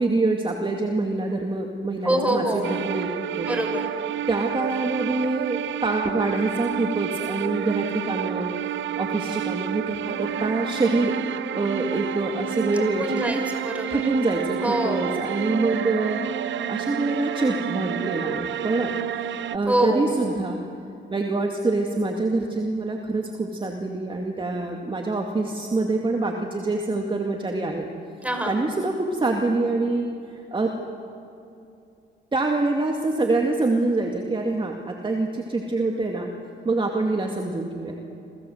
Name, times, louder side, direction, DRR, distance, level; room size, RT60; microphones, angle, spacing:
voice 1, 0.0-3.5 4.3-8.5 9.0-11.2 11.5-13.4 13.9-16.2 16.7-18.9 19.5-20.6 21.1-27.9 28.5-30.8 32.3-36.3 36.6-37.9, right 2 dB, 25° right, 2 dB, 2.4 m, -25 dB
voice 2, 2.0-2.7 3.4-3.9 12.7-14.0 14.6-15.1 19.6-20.0 28.2-28.5, right 1 dB, 5° right, 4 dB, 5.5 m, -25 dB
sound 1, 2.6-19.6, right 10 dB, 70° right, 0.9 m, -29 dB
29.0 x 23.5 x 8.1 m, 2.6 s
cardioid pair, 90°, 20 cm